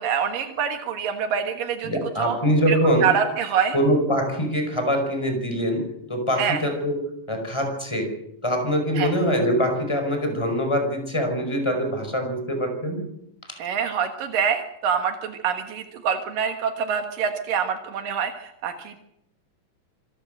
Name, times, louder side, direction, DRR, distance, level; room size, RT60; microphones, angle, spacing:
voice 1, 0.0-1.9 2.2-2.4 2.7-3.8 6.4-6.6 9.0-9.1 13.6-19.0, right 7 dB, 80° right, 6 dB, 3.2 m, -25 dB
voice 2, 1.8-3.1 3.7-7.0 7.3-8.2 8.4-13.1 13.5-13.6, equal, 5° left, 5 dB, 4.9 m, -24 dB
26.5 x 14.5 x 7.9 m, 0.78 s
omnidirectional pair, 3.9 m